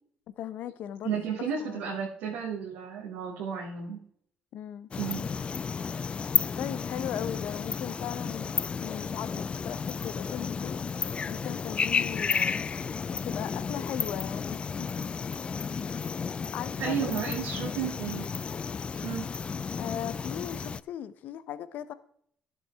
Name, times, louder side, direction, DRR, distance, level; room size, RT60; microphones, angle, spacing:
voice 1, 0.4-2.1 4.5-4.9 6.6-10.8 11.3-12.7 13.1-14.9 16.5-17.4 19.8-21.9, left 10 dB, 70° left, 0.7 m, -38 dB
voice 2, 1.0-4.0 5.0-5.3 16.8-18.5 18.9-19.2, right 7 dB, 85° right, 2.5 m, -33 dB
sound 1, 4.9-20.8, left 6 dB, 35° left, 0.4 m, -32 dB
12.0 x 7.8 x 3.5 m
supercardioid pair, 70°, 3 cm